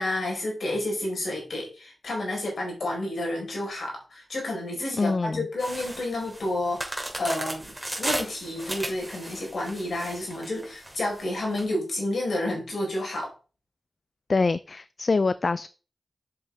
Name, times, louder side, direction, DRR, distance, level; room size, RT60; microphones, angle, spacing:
voice 1, 0.0-13.3, left 1 dB, 75° left, 0 dB, 4.5 m, -30 dB
voice 2, 5.0-5.5 14.3-15.7, left 3 dB, 55° left, 15 dB, 0.4 m, -25 dB
sound 1, 5.6-11.6, right 1 dB, 10° right, 2.9 m, -35 dB
7.7 x 7.5 x 3.5 m, 0.35 s
cardioid pair, 45°, 0 cm